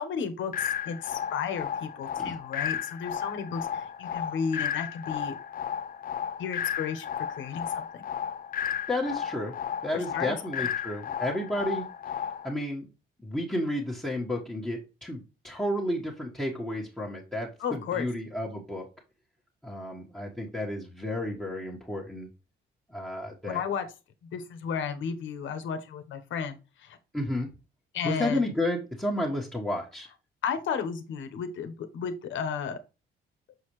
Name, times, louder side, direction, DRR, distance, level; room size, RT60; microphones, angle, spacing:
voice 1, 0.0-5.3 6.4-8.0 9.9-10.4 17.6-18.1 23.5-23.9 24.3-27.0 27.9-28.4 30.4-32.8, left 6 dB, 75° left, 1.1 m, -33 dB
sound 1, 0.5-12.5, left 8 dB, 45° left, 0.5 m, -34 dB
voice 2, 8.9-9.5 9.8-11.8 12.4-12.9 13.2-18.9 19.6-22.3 22.9-23.6 27.1-27.5 28.0-30.1, left 1 dB, 5° left, 1.5 m, -32 dB
6.7 x 4.7 x 3.2 m
cardioid pair, 90°, 20 cm